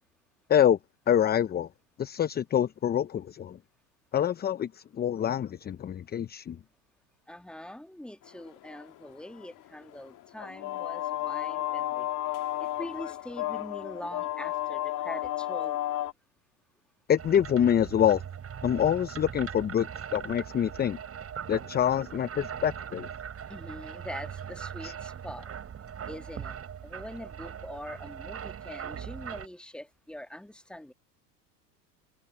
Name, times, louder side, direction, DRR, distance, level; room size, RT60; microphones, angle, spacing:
voice 1, 1.1-1.7 2.0-3.6 4.1-6.6 17.1-18.2 18.6-21.0 21.5-23.1 24.8-24.9, left 9 dB, 20° left, 0.7 m, -26 dB
voice 2, 7.3-12.1 12.6-15.8 23.5-25.5 26.1-26.6 26.8-30.9, left 1 dB, ahead, 1.8 m, -43 dB
sound 1, 8.3-16.1, left 14 dB, 40° left, 2.2 m, -33 dB
sound 2, 17.2-29.5, right 8 dB, 30° right, 7.5 m, -40 dB
hypercardioid pair, 95°, 46 cm